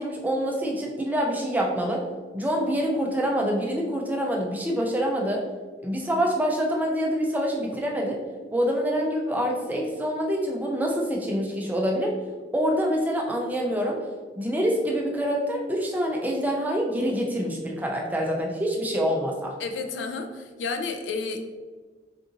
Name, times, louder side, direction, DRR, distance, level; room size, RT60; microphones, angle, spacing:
voice 1, 0.0-2.0 2.3-5.4 5.8-8.2 8.5-12.1 12.5-14.0 14.4-19.5, equal, 10° right, -1 dB, 0.4 m, -26 dB
voice 2, 19.6-21.4, left 4 dB, 90° left, 6 dB, 0.4 m, -31 dB
3.8 x 2.6 x 2.5 m, 1.4 s
head